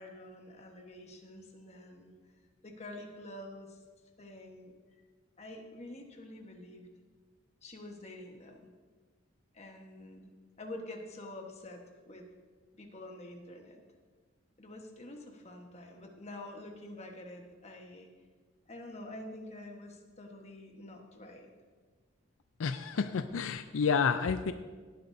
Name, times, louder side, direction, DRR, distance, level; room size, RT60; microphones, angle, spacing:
voice 1, 0.0-2.1 2.6-3.8 4.2-4.7 5.4-6.9 7.6-8.6 9.5-10.3 10.6-12.3 12.7-13.8 14.6-18.1 18.7-21.5, left 1 dB, 30° left, 2 dB, 1.3 m, -47 dB
voice 2, 22.6-24.5, left 6 dB, 75° left, 10 dB, 0.4 m, -30 dB
18.0 x 10.5 x 2.7 m, 1.5 s
head